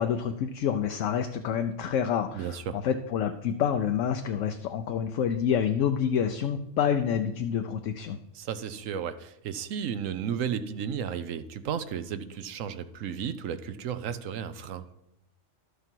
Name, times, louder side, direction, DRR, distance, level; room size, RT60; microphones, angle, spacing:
voice 1, 0.0-8.2, left 8 dB, 75° left, 6 dB, 1.0 m, -28 dB
voice 2, 2.3-2.8 8.3-14.8, right 8 dB, 80° right, 11 dB, 1.1 m, -33 dB
12.0 x 6.8 x 4.5 m, 0.82 s
omnidirectional pair, 1.3 m